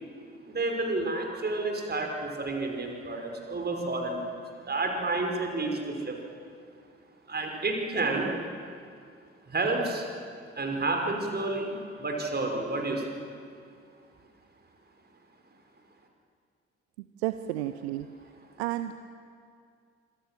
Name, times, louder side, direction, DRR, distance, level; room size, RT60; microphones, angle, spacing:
voice 1, 0.5-4.3 4.6-6.2 7.3-8.3 9.5-10.0 10.6-13.2, right 2 dB, 30° right, 2 dB, 5.7 m, -30 dB
voice 2, 17.2-18.1 18.6-18.9, right 14 dB, 70° right, 11 dB, 0.9 m, -31 dB
27.5 x 25.5 x 7.8 m, 2.3 s
figure-of-eight pair, 45°, 34 cm